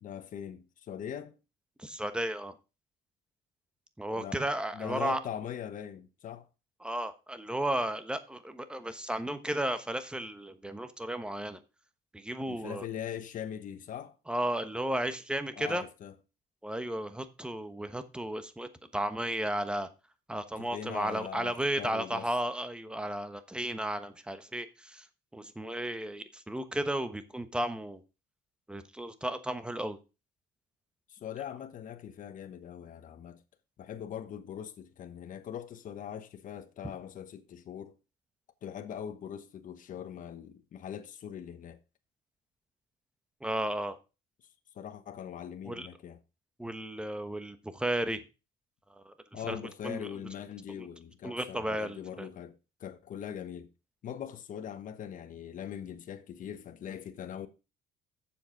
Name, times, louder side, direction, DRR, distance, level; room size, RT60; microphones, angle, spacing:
voice 1, 0.0-1.4 4.1-4.4 4.7-6.5 12.5-14.2 15.6-16.1 20.6-22.3 31.1-33.4 33.8-38.0 38.6-41.8 44.7-46.2 49.3-53.7 54.0-57.5, left 9 dB, 50° left, 1.1 m, -41 dB
voice 2, 1.8-2.5 4.0-5.2 6.8-11.6 12.1-12.8 14.3-15.8 16.6-19.9 20.3-25.1 25.3-28.0 28.7-30.0 43.4-44.0 45.6-45.9 46.6-48.2 48.9-49.6 49.8-50.1 50.7-50.9 51.2-52.3, right 1 dB, 5° right, 1.1 m, -34 dB
7.3 x 7.1 x 5.1 m
cardioid pair, 110°, 17 cm